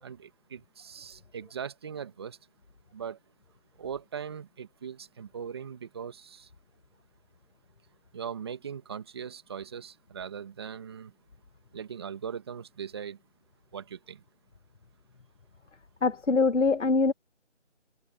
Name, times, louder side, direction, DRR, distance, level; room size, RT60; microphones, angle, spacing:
voice 1, 0.0-2.4 2.9-3.2 3.8-6.5 8.1-11.1 11.7-13.2 13.7-14.2, right 7 dB, 20° right, 1.9 m, -40 dB
voice 2, 16.0-17.1, left 4 dB, 85° left, 2.0 m, -23 dB
figure-of-eight pair, 170°, 35 cm